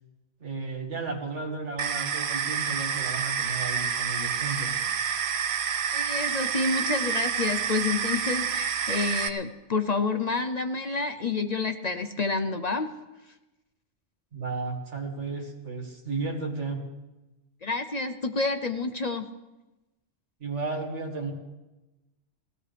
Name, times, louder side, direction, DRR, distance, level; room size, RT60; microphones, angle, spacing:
voice 1, 0.4-4.8 14.3-16.8 20.4-21.3, right 3 dB, 85° right, 2 dB, 2.1 m, -33 dB
sound 1, 1.8-9.3, right 7 dB, 70° right, 1.0 m, -28 dB
voice 2, 5.9-12.9 17.6-19.2, left 3 dB, 45° left, 7 dB, 0.6 m, -29 dB
19.0 x 16.0 x 3.3 m, 1.0 s
omnidirectional pair, 1.2 m